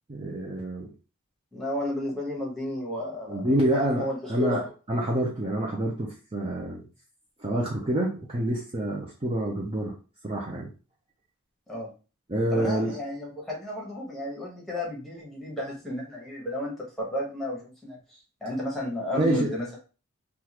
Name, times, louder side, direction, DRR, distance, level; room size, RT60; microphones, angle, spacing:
voice 1, 0.1-0.9 3.3-6.9 7.4-10.0 10.2-10.7 12.3-13.0 19.1-19.5, right 1 dB, 25° right, -3 dB, 0.5 m, -27 dB
voice 2, 1.5-4.7 11.7-11.9 12.5-19.8, left 1 dB, ahead, -3 dB, 1.1 m, -33 dB
3.6 x 2.4 x 2.9 m, 0.34 s
head